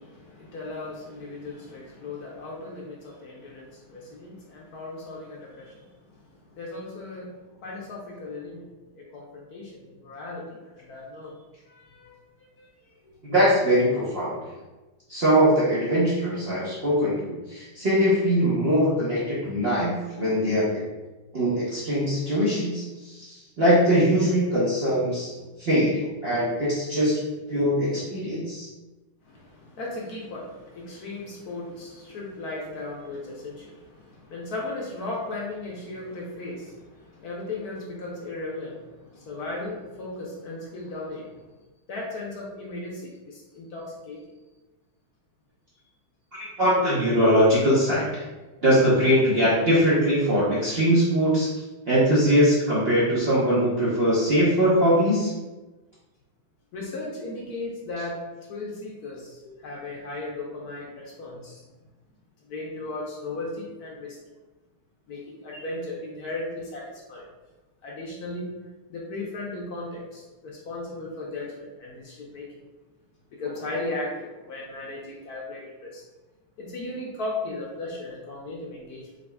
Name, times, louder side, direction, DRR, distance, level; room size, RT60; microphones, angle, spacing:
voice 1, 0.0-8.7 8.9-11.3 11.7-13.2 29.2-41.5 41.9-44.3 56.7-58.2 58.5-61.7 62.4-64.2 65.1-67.3 67.8-68.5 68.9-72.5 73.3-76.0 76.6-79.1, left 2 dB, 70° left, -3 dB, 0.9 m, -36 dB
voice 2, 13.2-14.4 15.1-20.8 21.3-28.7 46.3-48.3 48.6-55.3, equal, 65° right, -9 dB, 0.6 m, -22 dB
4.1 x 3.7 x 2.2 m, 1.1 s
omnidirectional pair, 2.3 m